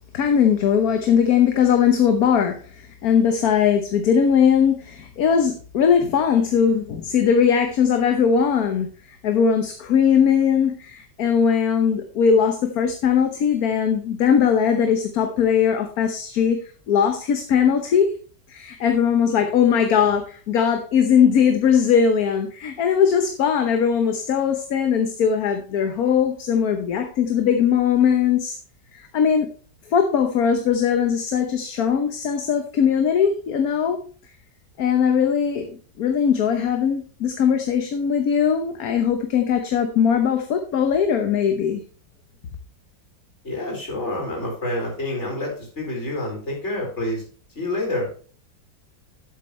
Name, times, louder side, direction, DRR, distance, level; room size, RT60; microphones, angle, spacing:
voice 1, 0.1-18.1 18.5-28.6 28.9-29.5 29.9-34.0 34.8-41.8, left 7 dB, 60° left, 6 dB, 1.4 m, -20 dB
voice 2, 43.4-47.2 47.5-48.1, left 1 dB, 40° left, 0 dB, 4.6 m, -28 dB
11.5 x 8.1 x 3.1 m, 0.39 s
omnidirectional pair, 1.9 m